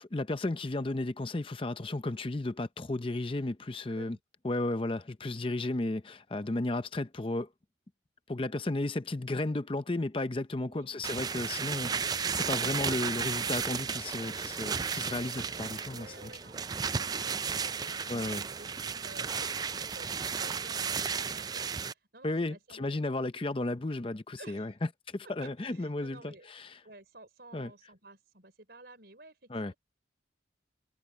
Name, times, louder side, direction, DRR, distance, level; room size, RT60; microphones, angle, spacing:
voice 1, 0.0-4.2 4.4-7.5 8.3-16.3 18.1-18.4 22.2-26.8 27.5-27.7 29.5-29.7, left 2 dB, 30° left, 0.6 m, -34 dB
voice 2, 3.9-4.2 10.7-11.0 15.9-23.0 24.4-24.7 25.4-26.5 26.8-29.8, right 2 dB, 60° right, 5.4 m, -53 dB
sound 1, 11.0-21.9, right 6 dB, 20° right, 0.3 m, -34 dB
head